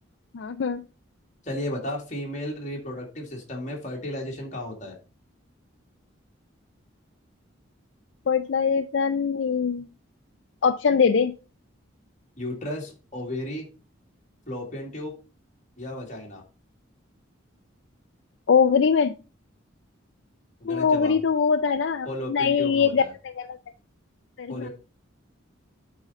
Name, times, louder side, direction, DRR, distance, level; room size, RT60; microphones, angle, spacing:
voice 1, 0.3-0.8 8.3-9.9 10.6-11.3 18.5-19.1 20.7-23.5 24.4-24.7, left 6 dB, 65° left, 10 dB, 0.4 m, -22 dB
voice 2, 1.4-5.0 12.4-13.7 14.5-15.1 15.8-16.4 20.6-21.2 22.0-23.1 24.5-24.7, left 1 dB, 35° left, 0 dB, 2.1 m, -34 dB
8.2 x 3.8 x 5.3 m, 0.34 s
head